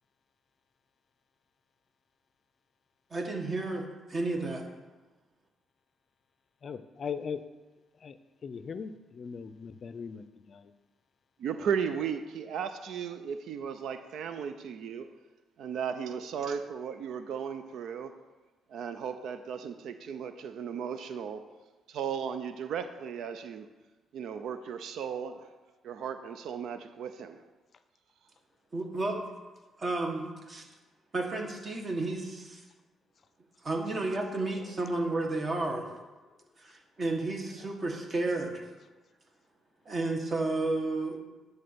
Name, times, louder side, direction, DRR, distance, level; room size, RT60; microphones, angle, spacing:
voice 1, 3.1-4.6 28.7-29.2 29.8-30.6 31.1-32.6 33.6-35.9 36.6-38.6 39.8-41.2, right 2 dB, 35° right, 1.5 m, -32 dB
voice 2, 6.6-7.4 8.0-10.7, left 6 dB, 50° left, 0.5 m, -39 dB
voice 3, 11.4-15.1 15.6-18.1 18.7-21.4 21.9-23.7 24.1-25.5 25.8-27.4, right 7 dB, 75° right, 0.5 m, -35 dB
9.7 x 4.2 x 6.7 m
cardioid pair, 90°, 0 cm